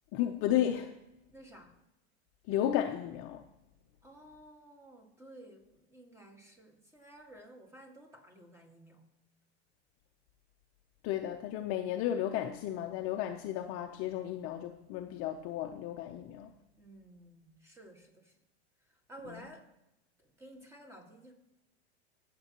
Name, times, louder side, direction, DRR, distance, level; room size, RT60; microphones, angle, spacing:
voice 1, 0.1-1.0 2.5-3.4 11.0-16.5 19.3-19.4, left 11 dB, 40° left, 4 dB, 0.7 m, -33 dB
voice 2, 1.3-1.8 4.0-9.0 16.8-18.3 18.9-19.7 20.2-21.3, right 1 dB, 10° right, 3 dB, 1.8 m, -53 dB
22.5 x 7.6 x 2.9 m, 0.89 s
supercardioid pair, 125°, 33 cm